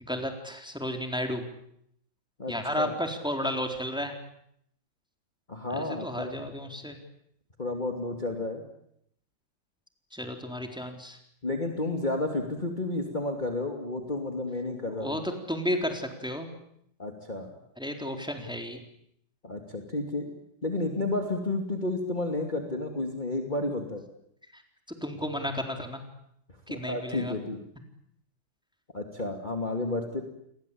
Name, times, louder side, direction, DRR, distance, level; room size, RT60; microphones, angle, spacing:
voice 1, 0.1-1.5 2.5-4.1 5.7-7.0 10.1-11.2 15.0-16.5 17.8-18.8 24.5-24.6 25.0-26.0 26.7-27.3, equal, ahead, 4 dB, 4.0 m, -33 dB
voice 2, 2.4-2.9 5.5-6.4 7.6-8.6 11.4-15.1 17.0-17.6 19.4-20.3 20.6-24.0 26.7-27.6 28.9-30.2, left 2 dB, 25° left, 3 dB, 2.7 m, -31 dB
30.0 x 23.0 x 8.7 m, 0.74 s
omnidirectional pair, 2.0 m